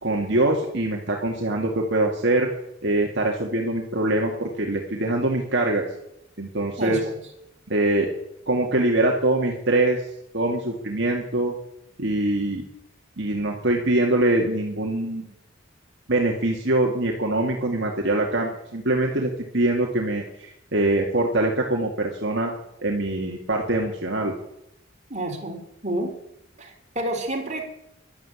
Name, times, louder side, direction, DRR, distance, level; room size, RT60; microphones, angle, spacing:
voice 1, 0.0-2.5 2.8-5.9 6.4-7.0 7.7-8.1 8.5-10.0 10.3-11.5 12.0-12.6 13.2-15.3 16.1-22.5 22.8-24.3, right 2 dB, 60° right, 0 dB, 2.1 m, -23 dB
voice 2, 6.8-7.1 25.1-26.1 26.6-27.6, right 1 dB, 35° right, 2 dB, 3.8 m, -29 dB
12.5 x 12.0 x 8.4 m, 0.80 s
head